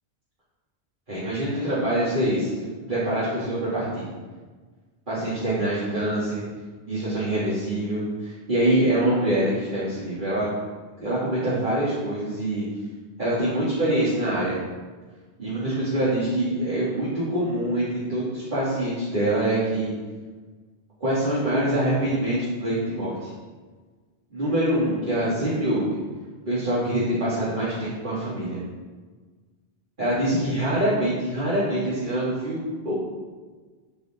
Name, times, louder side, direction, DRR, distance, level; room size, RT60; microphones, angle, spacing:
voice 1, 1.1-4.0 5.1-6.4 6.9-10.5 11.0-12.6 13.2-14.6 15.4-19.9 21.0-23.3 24.3-26.0 26.5-28.6 30.0-32.9, right 1 dB, 50° right, -12 dB, 2.8 m, -25 dB
12.0 x 5.4 x 4.5 m, 1.4 s
omnidirectional pair, 1.1 m